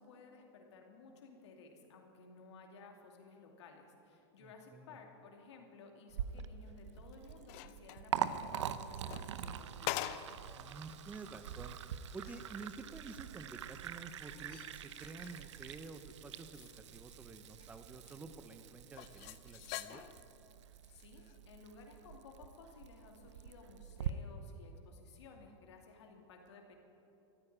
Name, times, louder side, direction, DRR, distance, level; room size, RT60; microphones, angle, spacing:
voice 1, 0.0-10.1 20.9-26.8, left 4 dB, 75° left, 2 dB, 2.6 m, -57 dB
voice 2, 4.4-5.0 10.5-11.8 12.1-20.0, right 4 dB, 10° right, 8 dB, 0.5 m, -50 dB
Liquid, 6.1-24.1, right 9 dB, 85° right, 0.7 m, -44 dB
sound 1, 6.9-8.1 8.8-10.5 10.9-11.0 11.5-11.6 12.0-12.5 14.1-16.1 16.4-17.7 18.1-18.2 18.9-20.3 21.2-21.4, left 15 dB, 40° left, 0.5 m, -45 dB
14.0 x 9.4 x 9.9 m, 2.9 s
supercardioid pair, 155°, 15 cm